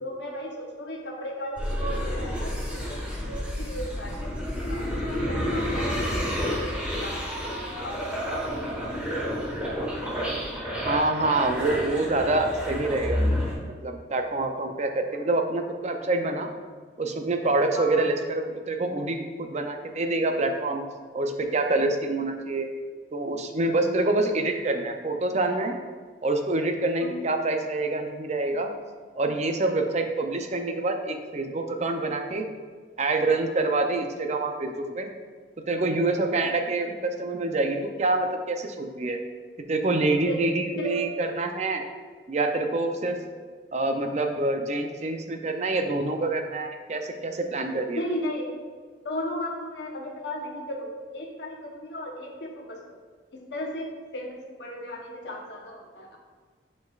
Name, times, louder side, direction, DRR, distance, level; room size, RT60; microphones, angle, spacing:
voice 1, 0.0-3.0 3.3-9.4 9.8-9.9 15.1-15.2 17.8-18.1 27.0-27.1 36.3-36.5 40.3-40.4 40.8-41.0 47.9-48.5 49.0-52.8 53.3-56.2, left 1 dB, 75° left, -1 dB, 1.0 m, -36 dB
sound 1, 1.6-13.5, equal, 5° right, 1.3 m, -30 dB
voice 2, 10.8-13.2 13.8-16.5 17.0-20.8 21.1-22.7 23.1-25.8 26.2-28.7 29.2-32.5 33.0-35.1 35.7-39.2 39.7-41.8 42.3-43.1 43.7-48.0, right 2 dB, 40° right, 5 dB, 0.5 m, -26 dB
9.5 x 4.3 x 2.4 m, 1.5 s
head